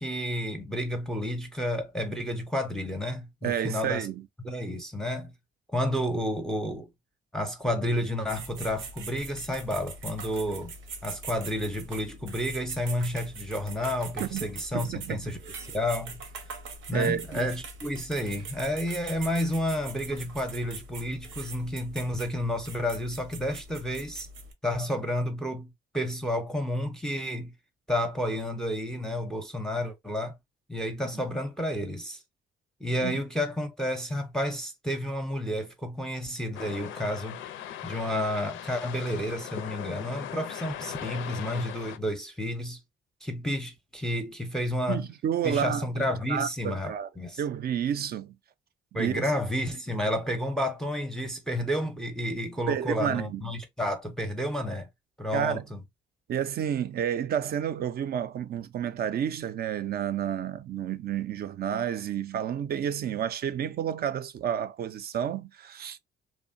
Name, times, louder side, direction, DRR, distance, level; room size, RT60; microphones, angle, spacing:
voice 1, 0.0-4.1 4.4-5.3 5.7-6.9 7.3-10.7 11.0-15.4 15.7-16.2 16.9-24.3 24.6-27.5 27.9-30.3 30.7-32.2 32.8-37.4 37.8-42.8 43.2-45.0 45.4-47.4 48.9-54.9 55.2-55.8, left 1 dB, 5° left, 0.6 m, -31 dB
voice 2, 3.4-4.3 14.2-14.5 14.7-15.3 16.9-17.5 33.0-33.2 44.9-45.9 46.3-47.1 47.4-48.4 49.0-49.2 52.7-53.5 55.3-55.6 56.3-66.0, right 9 dB, 50° right, 0.4 m, -30 dB
sound 1, 8.3-24.5, right 4 dB, 80° right, 0.8 m, -42 dB
sound 2, 36.5-42.0, left 10 dB, 80° left, 0.4 m, -39 dB
3.0 x 2.1 x 2.5 m
cardioid pair, 90°, 20 cm